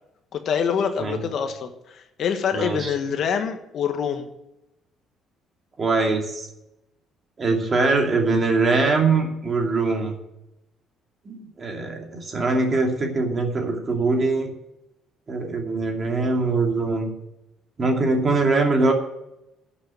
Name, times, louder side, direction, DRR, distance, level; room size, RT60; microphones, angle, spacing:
voice 1, 0.3-4.3, left 7 dB, 55° left, 7 dB, 1.3 m, -25 dB
voice 2, 2.5-2.9 5.8-6.5 7.4-10.2 11.2-14.5 15.3-17.1 17.8-18.9, right 3 dB, 30° right, 2 dB, 2.6 m, -22 dB
11.5 x 6.8 x 9.0 m, 0.89 s
cardioid pair, 140°, 0 cm